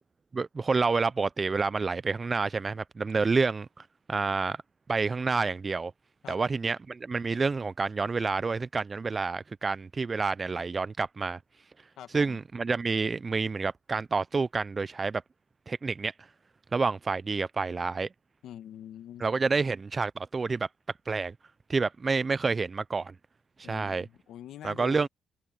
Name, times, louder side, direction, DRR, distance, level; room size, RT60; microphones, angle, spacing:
voice 1, 0.3-4.6 4.9-5.9 6.3-11.4 12.1-15.2 15.7-16.1 16.7-18.1 19.2-20.7 21.1-21.3 21.7-23.1 23.6-24.1 24.6-25.1, right 4 dB, 30° right, 0.4 m, -28 dB
voice 2, 12.0-12.4 18.4-19.2 23.6-25.1, left 11 dB, 75° left, 1.8 m, -44 dB
cardioid pair, 90°, 0 cm